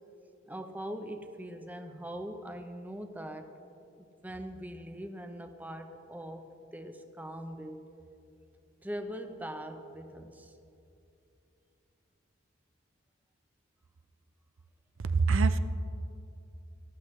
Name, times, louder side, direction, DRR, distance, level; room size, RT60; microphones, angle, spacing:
voice 1, 0.5-3.6 4.0-7.8 8.8-10.6, equal, 10° right, 6 dB, 0.7 m, -42 dB
voice 2, 15.0-15.6, right 4 dB, 80° right, 11 dB, 0.5 m, -24 dB
20.0 x 12.5 x 3.2 m, 2.7 s
head